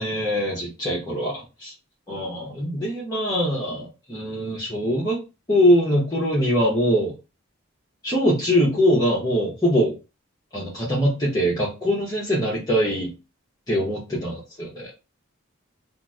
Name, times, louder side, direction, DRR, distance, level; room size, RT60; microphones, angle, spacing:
voice 1, 0.0-1.7 2.1-5.2 5.5-7.1 8.0-9.9 10.5-13.1 13.7-14.9, equal, 20° left, -7 dB, 0.7 m, -22 dB
2.8 x 2.0 x 3.5 m, 0.29 s
head